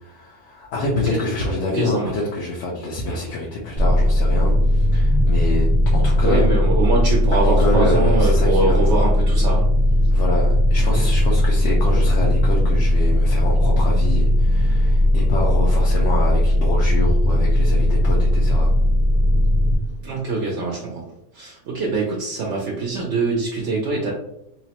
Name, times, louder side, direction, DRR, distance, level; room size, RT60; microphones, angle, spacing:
voice 1, 0.0-6.5 7.3-9.0 10.1-18.7, left 2 dB, 80° left, -3 dB, 0.9 m, -27 dB
voice 2, 1.7-2.1 3.1-3.2 6.2-9.6 10.8-11.1 20.0-21.1 21.3-24.1, right 3 dB, 70° right, -2 dB, 0.9 m, -24 dB
sound 1, 3.8-19.8, left 1 dB, 55° left, 0.8 m, -17 dB
3.0 x 2.0 x 2.8 m, 0.81 s
omnidirectional pair, 1.3 m